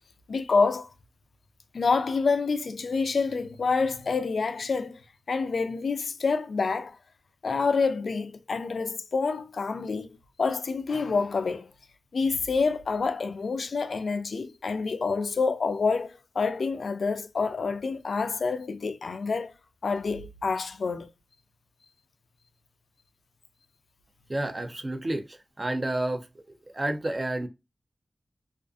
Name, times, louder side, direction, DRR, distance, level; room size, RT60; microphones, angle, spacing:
voice 1, 0.3-0.9 1.7-5.0 5.3-7.0 7.4-10.1 10.4-11.7 12.1-19.5 19.8-21.1, left 4 dB, 90° left, 0.3 m, -27 dB
voice 2, 24.3-26.3 26.7-27.5, right 1 dB, 35° right, 0.5 m, -30 dB
2.5 x 2.4 x 2.3 m
wide cardioid pair, 95°, 0 cm